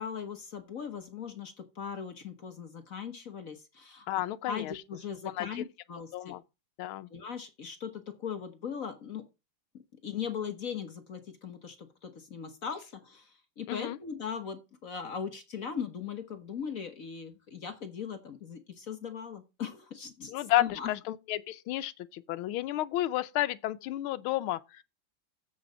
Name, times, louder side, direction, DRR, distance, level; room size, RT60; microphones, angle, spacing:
voice 1, 0.0-4.1 4.5-6.4 7.1-9.3 9.7-20.9, left 7 dB, 50° left, 1.2 m, -39 dB
voice 2, 4.1-4.7 5.4-5.5 6.1-6.4 6.8-7.1 13.7-14.0 20.3-24.8, left 15 dB, 80° left, 1.5 m, -31 dB
7.8 x 6.9 x 6.2 m
omnidirectional pair, 2.3 m